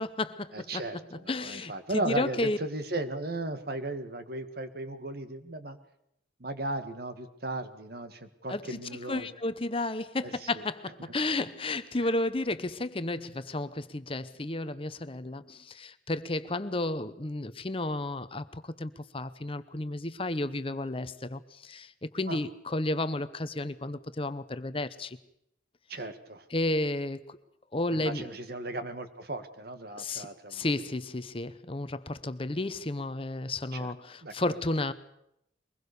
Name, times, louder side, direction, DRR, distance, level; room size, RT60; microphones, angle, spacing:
voice 1, 0.0-0.8 1.3-1.7 2.0-2.6 8.5-8.8 9.1-25.2 26.5-27.4 27.7-28.3 30.0-34.9, left 2 dB, 30° left, 0.9 m, -32 dB
voice 2, 0.5-5.8 6.4-9.3 10.2-10.6 11.0-11.1 22.3-22.4 25.9-26.4 27.9-30.8 33.7-33.9 34.2-34.6, right 2 dB, 55° right, 1.9 m, -36 dB
23.0 x 21.0 x 6.8 m
head